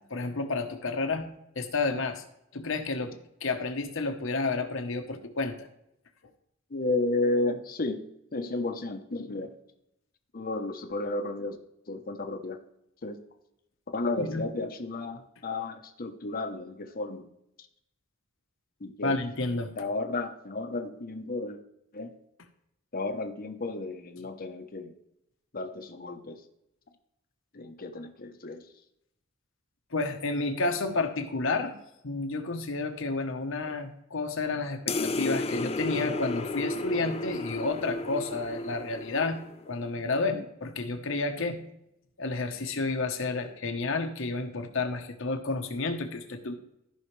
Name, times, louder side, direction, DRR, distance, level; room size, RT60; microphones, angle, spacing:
voice 1, 0.1-1.3 1.5-2.2 2.5-3.1 3.4-5.7 14.0-14.5 19.0-19.7 29.9-31.7 32.0-39.4 39.7-41.6 42.2-46.5, left 3 dB, 65° left, 7 dB, 1.1 m, -30 dB
voice 2, 6.7-8.0 8.3-9.5 10.3-11.6 11.9-12.6 13.0-13.2 13.9-17.3 18.8-19.2 19.8-21.6 21.9-22.1 22.9-24.9 25.5-26.4 27.5-28.6 40.3-40.4, left 2 dB, 45° left, 6 dB, 0.9 m, -32 dB
sound 1, 34.9-39.8, left 2 dB, 30° left, 0.5 m, -33 dB
14.5 x 5.6 x 3.3 m, 0.81 s
head